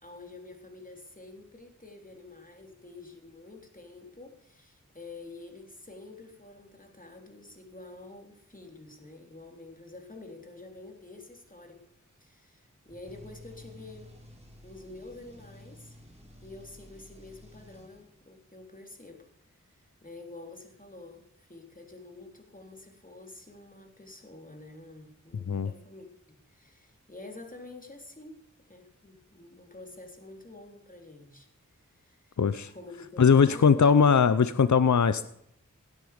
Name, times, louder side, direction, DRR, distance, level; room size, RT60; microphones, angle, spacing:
voice 1, 0.0-11.9 12.2-14.2 14.6-16.0 16.4-28.4 28.7-31.5 31.9-32.4 32.7-33.8, left 2 dB, 25° left, 3 dB, 3.6 m, -48 dB
sound 1, 12.9-18.3, left 1 dB, 20° right, 4.4 m, -52 dB
voice 2, 32.4-32.7 33.2-35.3, left 6 dB, 65° left, 14 dB, 0.7 m, -20 dB
17.5 x 9.7 x 5.1 m, 0.74 s
wide cardioid pair, 40°, 31 cm